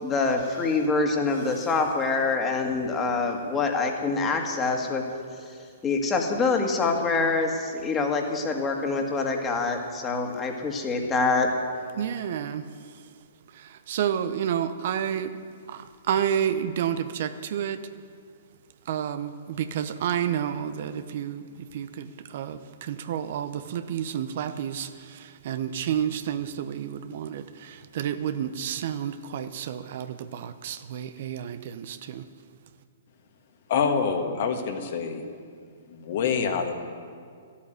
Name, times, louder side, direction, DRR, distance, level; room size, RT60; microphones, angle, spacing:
voice 1, 0.0-5.0 5.4-5.5 5.8-11.5, left 3 dB, 20° left, 2 dB, 2.0 m, -25 dB
voice 2, 12.0-13.0 13.5-15.4 15.7-17.8 18.9-32.2, right 9 dB, 55° right, 11 dB, 0.8 m, -30 dB
voice 3, 33.7-35.2 35.9-36.7, left 6 dB, 55° left, 4 dB, 1.7 m, -26 dB
13.0 x 8.5 x 9.2 m, 2.1 s
hypercardioid pair, 125°, 0 cm